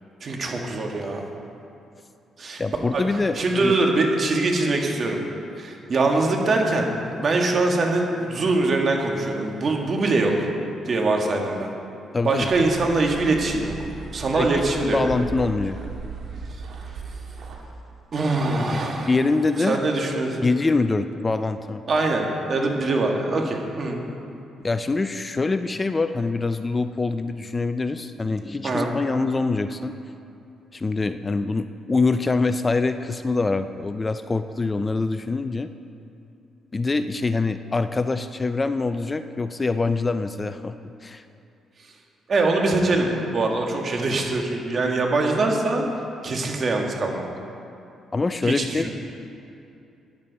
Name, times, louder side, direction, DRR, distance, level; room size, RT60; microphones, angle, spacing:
voice 1, 0.2-1.2 2.4-2.6 2.9-3.0 3.4-5.2 5.6-10.5 10.9-11.7 12.2-13.7 14.1-15.0 18.1-19.1 19.7-20.5 21.9-24.0 28.6-28.9 42.3-45.8 46.2-47.2 48.4-48.9, right 2 dB, 45° right, 1 dB, 1.8 m, -23 dB
voice 2, 2.6-3.7 12.1-12.5 14.3-15.8 19.1-19.8 20.4-21.8 24.6-29.9 30.7-35.7 36.7-40.8 41.0-41.2 48.1-48.9, left 3 dB, 25° left, 10 dB, 0.4 m, -24 dB
sound 1, 12.4-17.6, right 4 dB, 65° right, 1.7 m, -37 dB
14.0 x 10.5 x 4.1 m, 2.7 s
cardioid pair, 90°, 0 cm